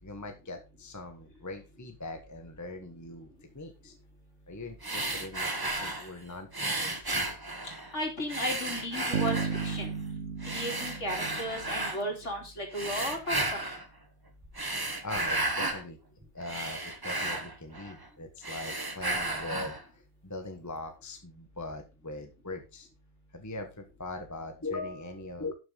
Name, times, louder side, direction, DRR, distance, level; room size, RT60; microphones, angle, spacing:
voice 1, 0.0-3.9 4.5-7.1 15.0-16.0 16.3-22.9 23.3-25.5, left 2 dB, 15° left, 5 dB, 1.2 m, -41 dB
sound 1, 4.8-6.1 6.5-7.9 8.3-9.9 10.4-12.0 12.7-13.9 14.4-15.8 16.2-18.1 18.4-19.8, right 2 dB, 15° right, 1.1 m, -33 dB
voice 2, 7.9-9.9 10.5-13.6, equal, 55° left, 1 dB, 3.3 m, -35 dB
sound 2, 9.1-12.2, right 5 dB, 60° right, 1.4 m, -34 dB
11.5 x 6.6 x 3.9 m, 0.28 s
omnidirectional pair, 1.5 m